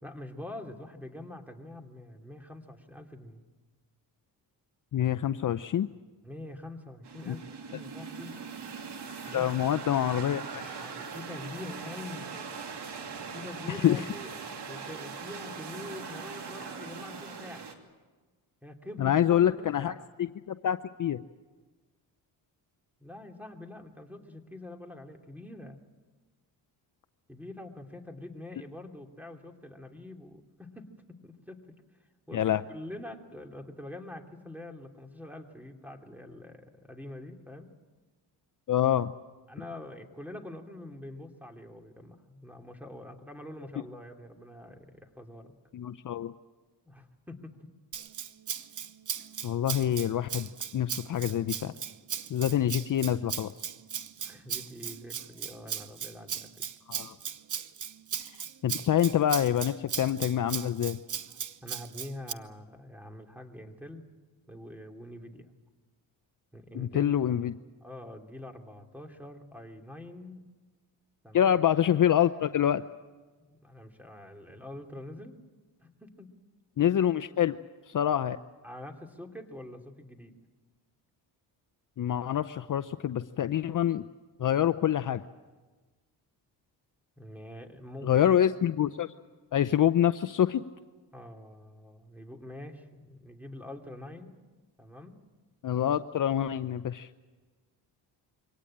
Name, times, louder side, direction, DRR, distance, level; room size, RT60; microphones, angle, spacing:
voice 1, 0.0-3.4 6.2-8.3 9.3-9.5 10.8-12.3 13.3-14.3 14.7-17.7 18.6-20.1 23.0-25.8 27.3-31.7 32.3-37.7 39.5-45.5 46.9-47.7 54.2-56.5 61.6-64.1 64.5-65.5 66.5-67.1 67.8-70.4 71.2-71.5 73.4-75.4 75.8-76.3 78.1-78.2 78.6-80.3 87.2-88.2 91.1-94.4 94.8-95.1, left 1 dB, 5° right, 4 dB, 2.9 m, -45 dB
voice 2, 4.9-5.9 7.3-7.4 9.3-10.8 13.7-14.0 19.0-19.9 20.2-21.2 32.3-32.6 38.7-39.1 45.7-46.3 49.4-51.7 52.3-53.5 56.9-57.1 58.6-61.0 66.7-67.5 71.3-72.8 76.8-77.6 77.9-78.4 82.0-84.0 84.4-85.2 88.0-89.1 89.5-90.6 95.6-97.1, left 10 dB, 45° left, 10 dB, 0.7 m, -26 dB
sound 1, 7.0-17.7, right 5 dB, 65° right, 2.7 m, -41 dB
Rattle (instrument), 47.9-62.3, right 8 dB, 45° right, 0.9 m, -37 dB
24.0 x 18.0 x 8.8 m, 1.3 s
cardioid pair, 75°, 44 cm